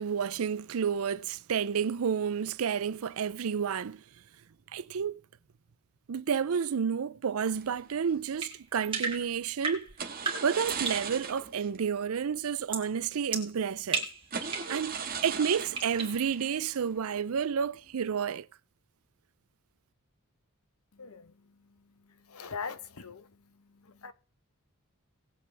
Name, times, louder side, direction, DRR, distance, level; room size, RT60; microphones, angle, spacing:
voice 1, 0.0-4.0 4.7-5.2 6.1-9.9 10.4-14.1 14.7-14.9 15.2-18.5, right 7 dB, 75° right, 0.5 m, -30 dB
sound 1, 7.5-8.3 10.0-11.8 12.0-12.1 12.6-12.7 13.4-13.5 14.2-17.4 17.7-18.1, right 6 dB, 40° right, 1.5 m, -38 dB
sound 2, 8.4-11.1 12.7-12.9 13.3-14.8 15.8-16.3, right 4 dB, 25° right, 2.7 m, -35 dB
voice 2, 21.0-21.3 22.3-23.3 23.8-24.1, left 5 dB, 80° left, 1.0 m, -41 dB
19.0 x 8.3 x 3.4 m
head